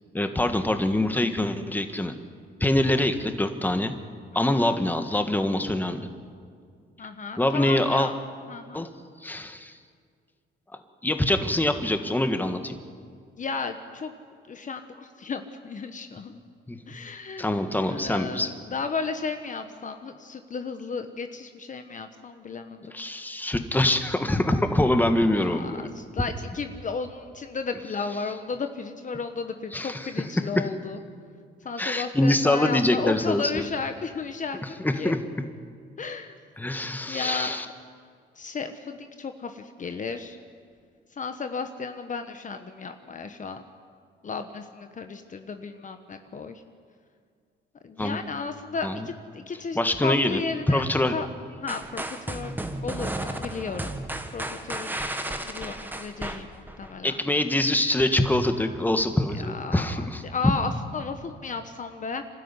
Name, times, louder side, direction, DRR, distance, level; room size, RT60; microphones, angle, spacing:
voice 1, 0.1-2.1 2.6-3.9 4.3-6.1 7.4-8.1 8.7-8.9 9.2-9.7 11.0-12.8 16.7-16.8 17.4-18.5 22.9-25.9 29.7-30.1 30.4-30.6 31.8-33.7 34.8-35.2 36.6-37.7 48.0-48.2 48.8-49.1 49.7-50.4 50.7-51.1 57.0-60.5, left 1 dB, 10° left, 7 dB, 1.6 m, -24 dB
voice 2, 4.3-4.8 7.0-8.2 8.5-8.8 13.4-14.1 14.4-16.4 16.9-23.0 25.4-31.0 31.6-35.2 36.0-36.4 37.1-37.6 38.4-40.4 41.1-43.6 44.2-46.6 47.8-50.8 51.1-51.3 51.6-52.5 52.8-53.9 54.3-54.9 55.2-57.2 59.4-62.2, left 5 dB, 40° left, 7 dB, 1.2 m, -34 dB
sound 1, 51.7-56.9, right 1 dB, 10° right, 1.7 m, -33 dB
25.5 x 13.0 x 9.9 m, 2.1 s
cardioid pair, 90°, 20 cm